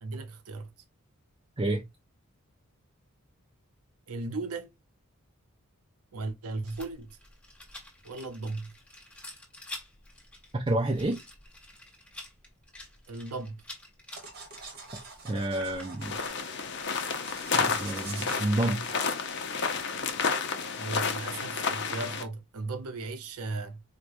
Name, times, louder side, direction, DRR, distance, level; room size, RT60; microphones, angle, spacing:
voice 1, 0.0-0.7 4.1-4.7 6.1-7.2 8.0-8.7 13.1-13.6 20.8-23.8, right 3 dB, 80° right, 0.7 m, -36 dB
Rattle, 6.7-16.3, left 1 dB, 5° left, 1.1 m, -48 dB
voice 2, 10.5-11.2 15.2-16.2 17.5-19.0, right 1 dB, 20° right, 0.4 m, -29 dB
sound 1, 14.1-20.3, right 4 dB, 45° right, 1.0 m, -47 dB
sound 2, 16.0-22.2, left 5 dB, 50° left, 0.6 m, -31 dB
4.6 x 2.2 x 2.5 m
head